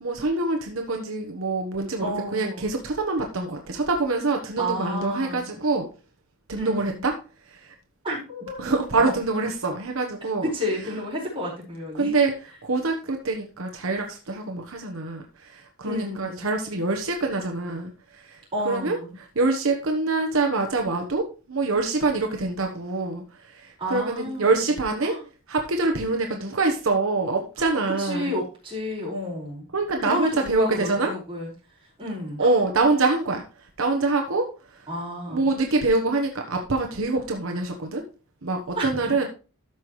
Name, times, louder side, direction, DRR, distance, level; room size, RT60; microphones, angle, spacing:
voice 1, 0.0-5.9 6.5-7.1 8.6-10.4 11.9-12.3 12.6-18.4 18.6-19.0 19.3-25.2 25.5-28.3 29.7-31.1 32.4-33.4 33.8-34.5 35.3-38.0 38.4-39.2, right 3 dB, 75° right, 3 dB, 1.1 m, -25 dB
voice 2, 2.0-2.7 4.6-5.5 6.5-7.1 8.0-8.6 8.9-9.1 10.4-12.1 15.8-16.4 18.5-19.2 23.8-24.6 25.0-25.2 27.6-29.7 30.0-31.5 32.0-32.5 34.9-35.5 38.7-39.0, equal, 25° right, -5 dB, 5.0 m, -31 dB
13.0 x 5.7 x 3.1 m, 0.34 s
head